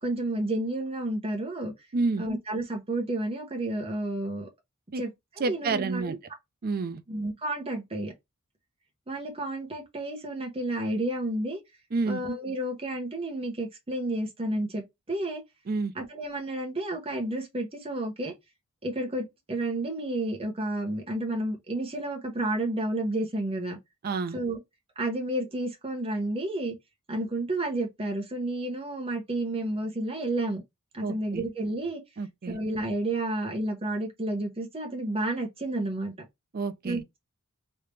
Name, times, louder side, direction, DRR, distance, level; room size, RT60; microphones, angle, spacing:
voice 1, 0.0-1.7 2.2-4.5 5.0-5.1 5.4-6.2 7.1-8.1 9.1-11.6 12.1-15.4 15.9-18.3 18.8-23.8 24.3-24.6 25.0-26.7 27.1-30.6 30.9-32.0 32.5-36.1 36.8-37.2, right 1 dB, 25° right, 1.1 m, -31 dB
voice 2, 1.9-2.3 4.9-5.0 5.4-6.2 6.6-7.0 11.9-12.2 15.7-15.9 24.0-24.4 31.0-31.4 32.2-32.6 36.5-37.0, right 3 dB, 40° right, 0.4 m, -29 dB
3.3 x 2.8 x 3.2 m
head